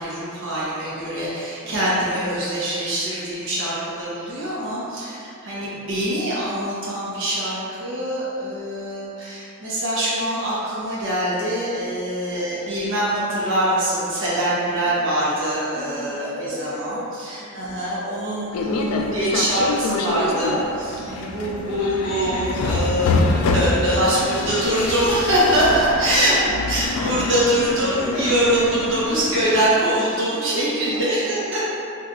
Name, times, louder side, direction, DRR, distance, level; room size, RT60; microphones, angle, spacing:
voice 1, 0.0-16.3 16.6-20.6 21.1-26.4 26.7-31.6, right 1 dB, 60° right, -8 dB, 0.8 m, -23 dB
voice 2, 1.6-2.1 5.5-6.0 12.3-12.7 14.8-15.3 15.7-17.8 20.2-20.8 21.3-22.4 24.2-24.9 26.1-26.9 27.5-27.7 28.0-29.2 30.9-31.6, left 1 dB, 10° right, -12 dB, 1.0 m, -36 dB
sound 1, 18.5-29.7, left 3 dB, 90° left, 0.3 m, -26 dB
2.7 x 2.3 x 3.8 m, 2.6 s
head